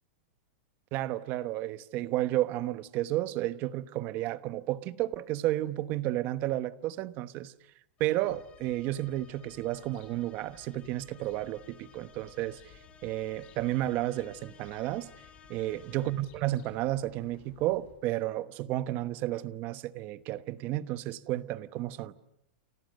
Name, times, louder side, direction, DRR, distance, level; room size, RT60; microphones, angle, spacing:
voice 1, 0.9-7.5 8.0-12.6 13.0-15.1 15.5-22.1, right 15 dB, 35° right, 1.0 m, -32 dB
sound 1, 8.0-16.5, left 6 dB, 20° left, 3.1 m, -58 dB
sound 2, 8.3-18.0, left 8 dB, 35° left, 7.8 m, -59 dB
29.5 x 29.0 x 6.6 m
supercardioid pair, 160°, 6 cm